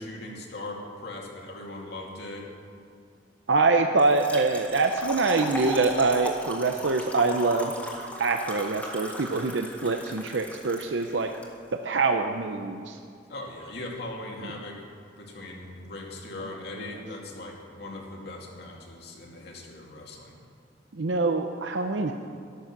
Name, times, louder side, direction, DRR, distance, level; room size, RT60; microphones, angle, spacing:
voice 1, 0.0-2.5 13.3-14.8 15.2-20.4, left 2 dB, 60° left, -1 dB, 2.5 m, -39 dB
voice 2, 3.5-7.7 8.2-11.3 11.8-13.0 20.9-22.1, right 3 dB, 80° right, 5 dB, 0.7 m, -24 dB
Trickle dribble / Fill (with liquid), 4.0-11.5, equal, 10° left, 1.8 m, -37 dB
13.5 x 11.5 x 6.0 m, 2.4 s
head